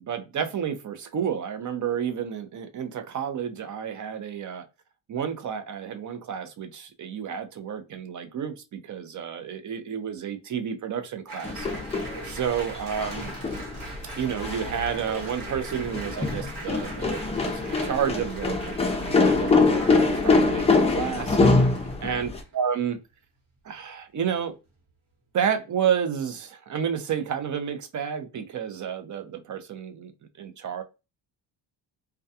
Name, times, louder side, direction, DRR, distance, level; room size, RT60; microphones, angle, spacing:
voice 1, 0.1-4.6 5.1-11.7 12.2-13.3 14.2-21.4 22.0-23.0 23.6-24.5 25.3-30.1 30.4-30.8, right 8 dB, 40° right, 0.5 m, -30 dB
Applause, 11.3-22.6, right 2 dB, 60° right, 1.2 m, -42 dB
sound 1, 11.4-22.4, left 3 dB, 15° left, 0.4 m, -24 dB
2.3 x 2.3 x 2.6 m
cardioid pair, 110°, 46 cm